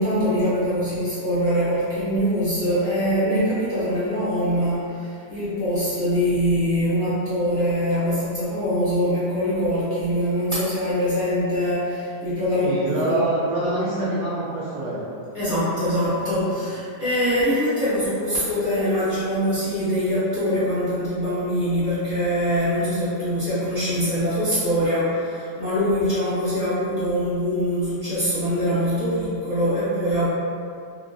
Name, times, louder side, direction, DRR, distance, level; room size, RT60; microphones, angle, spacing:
voice 1, 0.0-12.7 13.1-13.2 13.6-14.2 15.3-30.3, equal, 20° left, -14 dB, 1.0 m, -23 dB
voice 2, 12.5-15.0, right 2 dB, 70° right, -7 dB, 0.7 m, -25 dB
2.9 x 2.6 x 2.5 m, 2.5 s
omnidirectional pair, 1.8 m